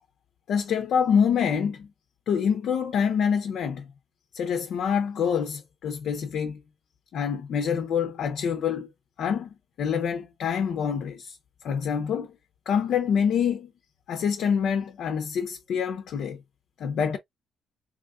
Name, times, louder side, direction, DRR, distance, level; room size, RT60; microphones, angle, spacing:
voice 1, 0.5-1.9 2.3-3.9 4.3-6.6 7.1-8.9 9.2-11.4 11.6-12.3 12.7-13.7 14.1-16.4 16.8-17.2, left 7 dB, 70° left, 0.6 m, -26 dB
3.6 x 3.0 x 2.4 m
cardioid pair, 90°, 0 cm